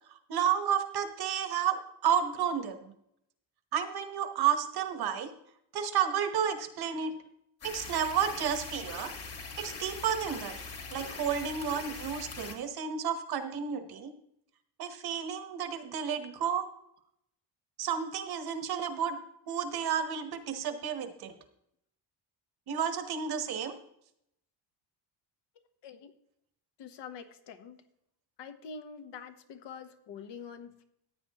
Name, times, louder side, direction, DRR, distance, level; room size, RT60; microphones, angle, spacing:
voice 1, 0.3-2.9 3.7-5.3 5.7-7.1 7.6-9.1 9.6-10.6 10.9-14.1 14.8-16.6 17.8-19.2 19.5-21.3 22.7-23.8, right 8 dB, 55° right, 8 dB, 1.1 m, -31 dB
sound 1, 7.6-12.5, left 4 dB, 30° left, 1.7 m, -42 dB
voice 2, 26.8-27.8 28.4-30.8, left 6 dB, 60° left, 8 dB, 1.1 m, -45 dB
14.5 x 9.2 x 2.9 m, 0.75 s
cardioid pair, 170°, 46 cm